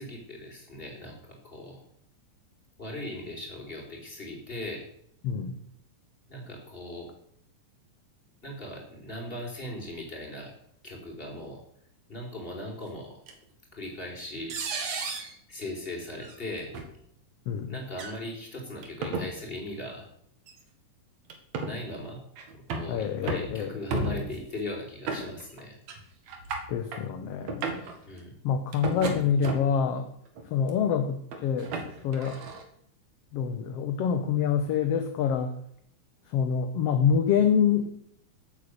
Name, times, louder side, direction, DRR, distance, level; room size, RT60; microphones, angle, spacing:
voice 1, 0.0-1.8 2.8-4.9 6.3-7.1 8.4-10.5 10.8-11.6 12.1-13.2 13.7-14.6 15.5-16.8 17.7-20.1 21.6-22.2 22.5-25.8 28.0-28.3, left 1 dB, 15° left, 0 dB, 4.1 m, -39 dB
voice 2, 5.2-5.6 17.5-17.8 22.9-23.7 26.7-27.7 28.4-30.1 30.5-31.7 32.0-32.4 33.3-35.5 36.3-37.9, left 7 dB, 65° left, 7 dB, 1.7 m, -26 dB
sound 1, 13.3-13.4 14.5-15.3 16.2-16.4 16.7-16.9 17.9-18.2 18.8-19.3 20.5-20.6 21.3-21.8 22.4-22.9 23.3-23.5 23.9-24.4 25.1-25.6 25.9-26.0 26.3-27.0 27.4-27.9 28.7-29.8 30.4-30.7 31.3-32.6, right 3 dB, 65° right, 2.9 m, -33 dB
16.0 x 8.4 x 6.7 m, 0.69 s
omnidirectional pair, 3.6 m